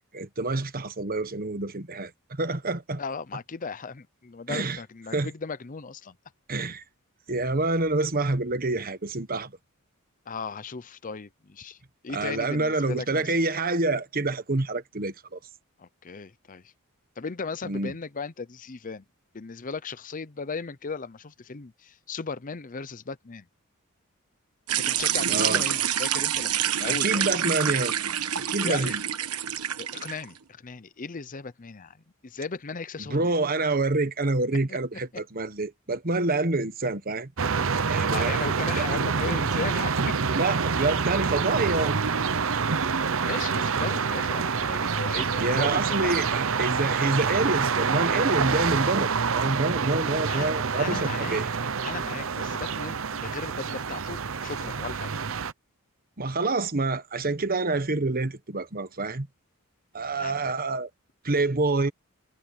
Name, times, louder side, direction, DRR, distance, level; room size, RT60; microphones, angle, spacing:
voice 1, 0.1-3.0 4.5-4.8 5.1-5.3 6.5-6.8 7.3-9.5 12.1-15.4 17.6-17.9 25.3-25.6 26.8-27.9 28.5-29.0 33.0-37.3 37.9-38.3 38.8-38.9 40.3-42.0 45.4-51.5 56.2-59.3 59.9-60.9 61.2-61.9, right 2 dB, 40° right, 1.3 m, -27 dB
voice 2, 3.0-6.1 10.3-11.8 12.0-13.4 15.8-16.7 17.2-19.0 19.3-23.5 24.7-27.4 28.6-28.9 29.8-32.0 32.2-33.3 34.7-34.8 38.1-40.2 43.2-46.2 50.3-50.5 50.8-51.5 51.8-55.1 60.2-60.5, left 4 dB, 35° left, 0.6 m, -36 dB
sound 1, 24.7-30.2, right 10 dB, 90° right, 1.3 m, -27 dB
sound 2, 37.4-55.5, right 5 dB, 65° right, 0.8 m, -27 dB
head